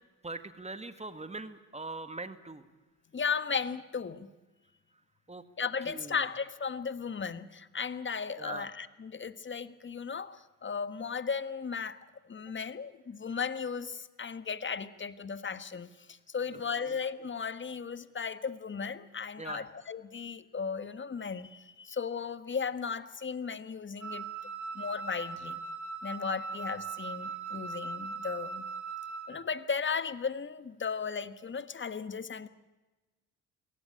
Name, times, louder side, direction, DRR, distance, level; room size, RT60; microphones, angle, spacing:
voice 1, 0.2-2.7 5.3-5.4 5.9-6.3 8.4-8.7 16.5-17.0 19.4-19.7 27.2-27.4, right 3 dB, 20° right, 11 dB, 1.8 m, -42 dB
voice 2, 3.1-4.3 5.6-12.0 12.2-24.3 24.7-25.6 26.0-28.6 29.3-32.5, left 6 dB, 30° left, 14 dB, 1.4 m, -36 dB
Wind instrument woodwind instrument, 24.0-29.4, right 4 dB, 50° right, 4.7 m, -39 dB
23.0 x 17.5 x 8.5 m, 1.2 s
supercardioid pair, 60°, 37 cm